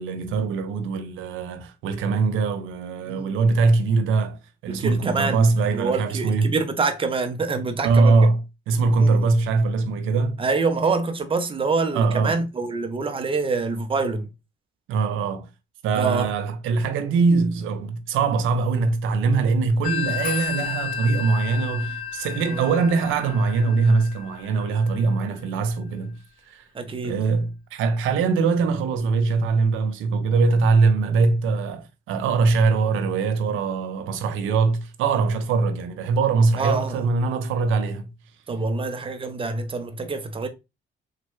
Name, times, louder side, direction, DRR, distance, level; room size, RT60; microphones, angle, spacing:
voice 1, 0.0-6.5 7.8-8.4 8.7-10.4 11.9-12.5 14.9-15.5 15.8-26.2 26.5-26.6 27.0-38.1, right 4 dB, 90° right, 0.5 m, -22 dB
voice 2, 4.7-8.3 9.0-9.3 10.4-14.3 16.0-16.3 22.5-22.7 26.7-27.2 36.6-37.1 38.5-40.5, right 4 dB, 25° right, 0.6 m, -26 dB
Telephone, 19.8-25.2, left 9 dB, 45° left, 0.7 m, -32 dB
3.1 x 2.1 x 3.0 m
cardioid pair, 90°, 20 cm